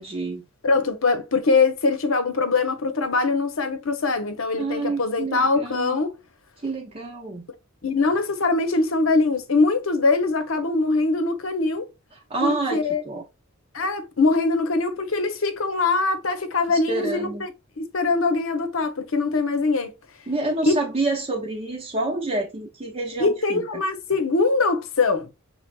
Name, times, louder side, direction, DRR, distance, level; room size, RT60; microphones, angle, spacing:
voice 1, 0.0-0.5 4.6-6.0 6.6-7.5 12.3-13.2 16.7-17.5 20.3-23.8, right 2 dB, 30° right, 0.7 m, -28 dB
voice 2, 0.6-6.1 7.8-11.9 12.4-13.0 13.7-17.5 17.8-19.9 20.6-20.8 23.2-25.3, left 3 dB, 75° left, 0.9 m, -22 dB
6.0 x 3.4 x 2.3 m
head